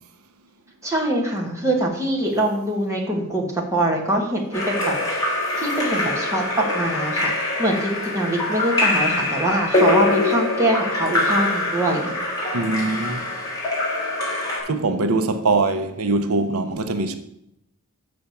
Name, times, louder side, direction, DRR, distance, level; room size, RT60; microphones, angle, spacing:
voice 1, 0.8-4.9 5.5-12.1, right 1 dB, 15° right, 1.5 m, -23 dB
Splash splatter / Drip / Trickle dribble, 4.5-14.6, left 2 dB, 15° left, 2.9 m, -23 dB
voice 2, 12.5-13.3 14.7-17.2, right 3 dB, 85° right, 0.7 m, -22 dB
6.8 x 5.0 x 7.1 m
head